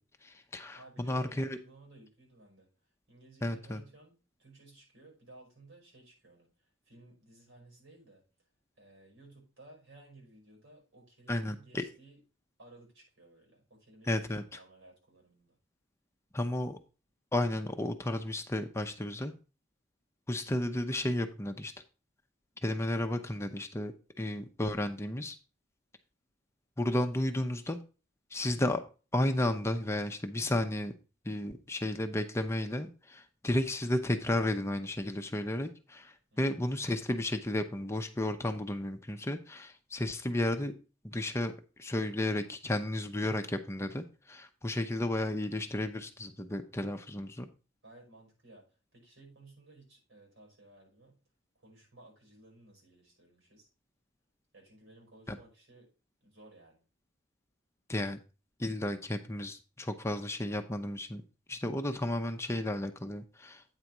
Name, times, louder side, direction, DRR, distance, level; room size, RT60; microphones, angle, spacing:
voice 1, 0.2-1.6 3.4-3.8 11.3-11.8 14.0-14.6 16.3-16.8 17.3-19.3 20.3-21.7 22.6-25.4 26.8-27.8 28.3-28.8 29.1-30.9 31.2-40.7 41.0-41.5 41.8-47.5 55.3-55.4 57.9-58.2 58.6-61.2 61.5-63.6, left 1 dB, 15° left, 6 dB, 0.6 m, -33 dB
voice 2, 0.8-2.7 3.1-4.1 4.4-6.5 6.9-8.2 8.8-12.2 12.6-15.6 36.3-36.8 47.8-48.7 48.9-51.2 51.5-53.7 54.5-55.9 56.2-56.8, right 2 dB, 80° right, 0 dB, 5.6 m, -57 dB
8.9 x 4.1 x 6.0 m, 0.33 s
head